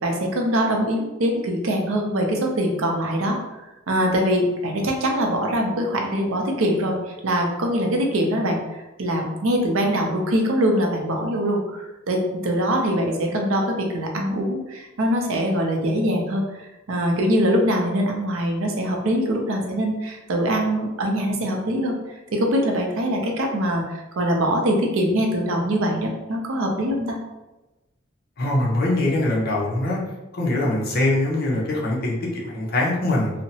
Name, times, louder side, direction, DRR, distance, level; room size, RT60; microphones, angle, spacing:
voice 1, 0.0-3.4 3.9-7.0 7.2-8.6 9.0-12.2 12.4-16.4 16.9-21.9 22.3-23.8 24.2-27.2, equal, 75° right, 1 dB, 0.5 m, -23 dB
voice 2, 28.4-30.0 30.3-33.3, left 1 dB, 50° left, -4 dB, 0.7 m, -22 dB
2.7 x 2.1 x 2.7 m, 1.0 s
head